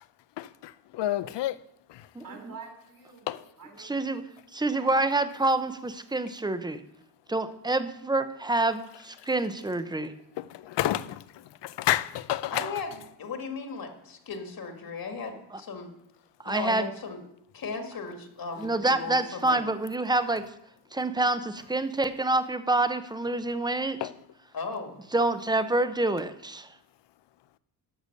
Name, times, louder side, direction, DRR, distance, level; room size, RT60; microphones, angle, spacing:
voice 1, 0.4-1.6 1.9-2.1 3.3-3.4 10.4-12.8 24.0-24.1, left 13 dB, 75° left, 0.6 m, -30 dB
voice 2, 2.2-4.2 4.7-4.9 12.4-12.5, right 5 dB, 50° right, 3.2 m, -47 dB
voice 3, 3.8-4.2 4.5-6.8 7.3-10.1 15.5-15.6 16.4-16.9 18.6-20.5 20.9-24.0 25.1-26.7, right 2 dB, 10° right, 0.7 m, -27 dB
voice 4, 12.5-15.9 16.5-17.2 17.5-19.6 24.5-25.0, left 4 dB, 55° left, 1.9 m, -36 dB
12.0 x 6.8 x 6.6 m
cardioid pair, 125°, 42 cm